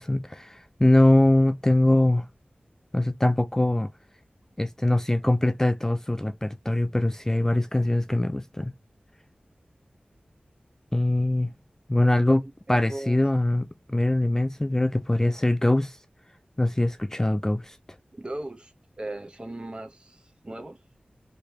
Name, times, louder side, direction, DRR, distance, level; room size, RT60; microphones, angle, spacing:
voice 1, 0.0-2.3 2.9-3.9 4.6-8.7 10.9-11.5 11.9-12.4 12.7-16.0 16.6-17.8, left 1 dB, 15° left, 0.3 m, -22 dB
voice 2, 12.7-13.2 18.1-20.8, right 1 dB, 30° right, 0.9 m, -38 dB
3.3 x 3.0 x 2.9 m
wide cardioid pair, 75°, 3 cm